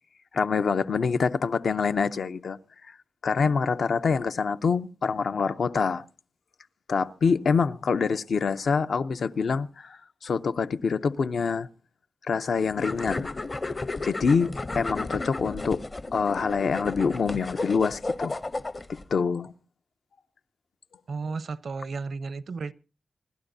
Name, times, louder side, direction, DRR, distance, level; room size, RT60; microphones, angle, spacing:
voice 1, 0.3-2.6 2.9-3.0 3.2-6.0 6.9-11.7 12.2-13.3 14.0-15.8 16.1-18.3 18.9-19.5, left 5 dB, 75° left, 0.6 m, -26 dB
sound 1, 12.8-19.0, left 2 dB, 30° left, 0.6 m, -33 dB
voice 2, 21.1-22.7, right 4 dB, 70° right, 0.6 m, -33 dB
27.0 x 12.0 x 2.6 m
wide cardioid pair, 135°, 0 cm